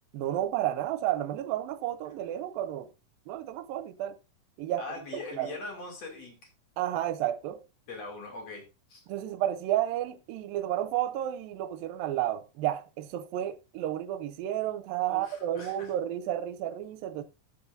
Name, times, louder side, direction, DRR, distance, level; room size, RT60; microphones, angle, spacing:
voice 1, 0.1-2.9 3.3-4.2 4.6-4.8 5.1-5.6 6.8-7.6 9.1-17.2, right 12 dB, 85° right, 2.4 m, -31 dB
voice 2, 4.8-6.4 7.9-8.6 8.9-9.0 15.1-15.9, left 3 dB, 50° left, 3.5 m, -41 dB
13.5 x 8.6 x 2.6 m
omnidirectional pair, 4.1 m